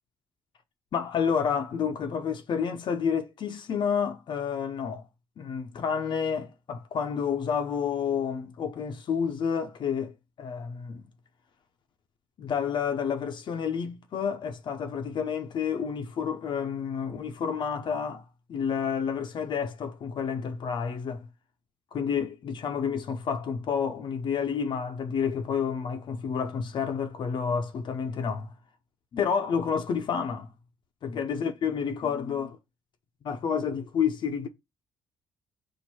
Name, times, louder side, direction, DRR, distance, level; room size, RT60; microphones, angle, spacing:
voice 1, 0.9-5.0 5.4-11.0 12.4-18.2 18.5-21.3 21.9-28.5 29.1-30.5 31.0-32.6 33.2-34.5, left 7 dB, 55° left, 0.6 m, -29 dB
4.4 x 2.5 x 4.3 m
cardioid pair, 80°, 9 cm